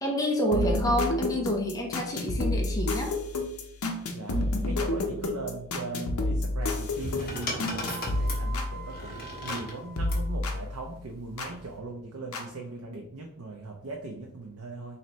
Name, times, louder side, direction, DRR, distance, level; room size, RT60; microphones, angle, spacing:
voice 1, 0.0-3.1, equal, 15° left, -1 dB, 0.6 m, -28 dB
sound 1, 0.5-9.7 10.0-11.5 12.3-12.4, left 2 dB, 70° left, 0.7 m, -30 dB
voice 2, 4.1-15.0, right 2 dB, 70° right, 1 dB, 0.5 m, -39 dB
sound 2, 6.6-10.3 11.3-11.7, left 1 dB, 45° left, 1.2 m, -37 dB
sound 3, 7.8-10.4, right 7 dB, 45° right, 0.8 m, -45 dB
3.1 x 2.8 x 4.1 m, 0.72 s
head